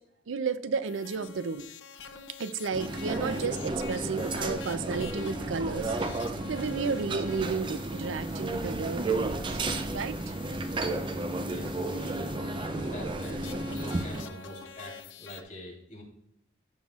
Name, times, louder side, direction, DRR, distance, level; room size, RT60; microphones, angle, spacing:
voice 1, 0.3-1.7 2.4-6.0 6.5-9.6 9.9-10.2, right 5 dB, 90° right, 13 dB, 0.5 m, -32 dB
sound 1, 0.9-15.4, left 6 dB, 80° left, 0.6 m, -47 dB
sound 2, 2.7-14.2, right 2 dB, 25° right, 0.4 m, -33 dB
sound 3, 4.9-10.9, equal, 60° left, 1.5 m, -52 dB
voice 2, 11.5-12.4 12.7-16.0, equal, 45° left, -3 dB, 3.3 m, -44 dB
15.0 x 5.6 x 2.4 m, 0.78 s
head